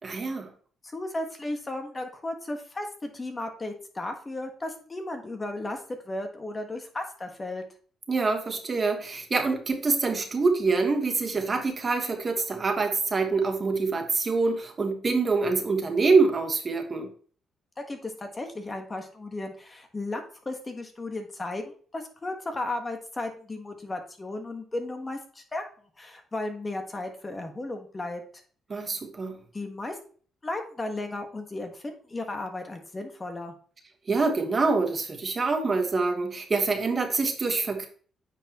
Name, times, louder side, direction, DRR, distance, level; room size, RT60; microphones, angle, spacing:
voice 1, 0.0-0.5 8.1-17.1 28.7-29.4 34.1-37.9, right 4 dB, 35° right, 5 dB, 1.2 m, -25 dB
voice 2, 0.8-5.8 6.0-7.6 17.9-25.6 26.0-28.2 29.5-30.0 30.4-33.5, left 2 dB, 25° left, 5 dB, 1.3 m, -35 dB
8.9 x 4.5 x 2.9 m, 0.44 s
cardioid pair, 90°, 0 cm